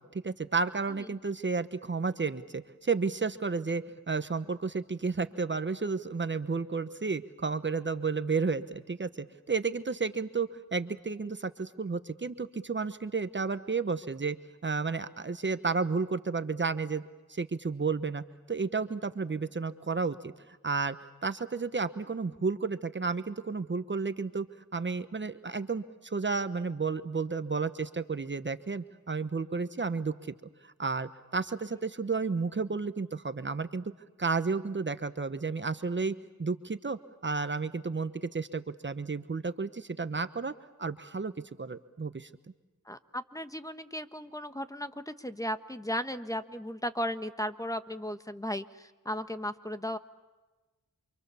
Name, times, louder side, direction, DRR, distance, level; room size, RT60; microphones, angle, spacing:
voice 1, 0.1-14.4 14.6-17.0 17.3-21.0 21.2-24.5 24.7-30.1 30.6-33.9 34.2-40.5 40.8-41.3 41.6-42.3, right 4 dB, 35° right, 11 dB, 1.1 m, -32 dB
voice 2, 42.9-50.0, equal, 10° left, 10 dB, 1.3 m, -36 dB
28.5 x 25.5 x 7.0 m, 1.2 s
cardioid pair, 65°, 32 cm